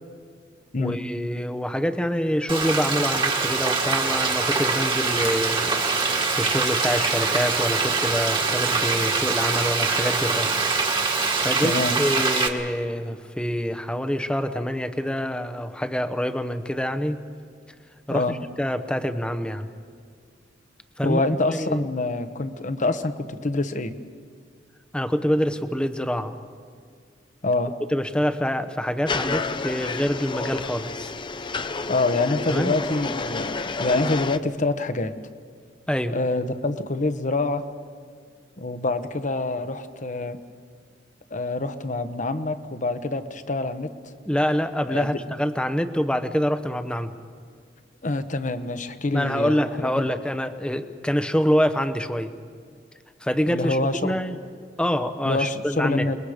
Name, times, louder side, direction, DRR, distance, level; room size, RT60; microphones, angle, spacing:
voice 1, 0.8-10.5 11.4-17.2 18.1-19.7 21.0-21.2 21.5-21.9 24.9-26.3 27.9-31.1 32.5-32.8 35.9-36.2 44.2-47.1 49.1-52.3 53.2-54.4 54.8-56.1, equal, 5° left, 9 dB, 0.9 m, -26 dB
Frying (food), 2.5-12.5, right 4 dB, 30° right, 1.8 m, -23 dB
voice 2, 11.6-12.0 18.1-18.3 21.0-23.9 27.4-27.7 31.9-35.1 36.1-37.6 38.6-40.4 41.3-43.9 44.9-45.2 48.0-50.1 53.5-54.2 55.2-56.2, left 2 dB, 45° left, 10 dB, 1.1 m, -26 dB
sound 1, 29.1-34.4, left 4 dB, 25° left, 0.6 m, -30 dB
29.0 x 21.5 x 5.0 m, 2.1 s
head